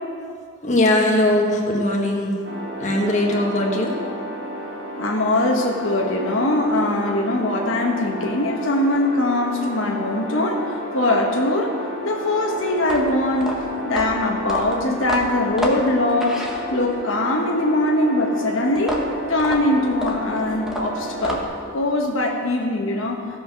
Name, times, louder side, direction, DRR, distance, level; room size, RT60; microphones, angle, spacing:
voice 1, 0.6-2.4 2.8-3.9, left 1 dB, 40° left, -1 dB, 1.5 m, -20 dB
sound 1, 2.4-21.4, equal, 75° right, 2.0 m, -32 dB
voice 2, 5.0-10.6 10.9-11.7 12.0-16.4 16.7-19.0 19.3-21.4 21.7-23.2, left 1 dB, 80° left, 0 dB, 1.2 m, -21 dB
sound 2, 12.8-17.1 18.8-21.7, left 1 dB, ahead, 1.2 m, -29 dB
15.5 x 5.6 x 6.1 m, 2.4 s
head